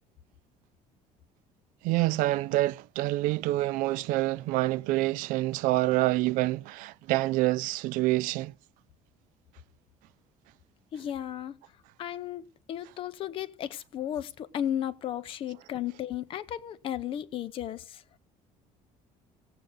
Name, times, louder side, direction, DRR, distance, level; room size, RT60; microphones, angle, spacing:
voice 1, 1.8-8.5, right 18 dB, 85° right, 0.5 m, -27 dB
voice 2, 10.9-11.6 12.0-18.0, left 10 dB, 40° left, 0.7 m, -34 dB
16.5 x 8.0 x 3.9 m
cardioid pair, 175°, 13 cm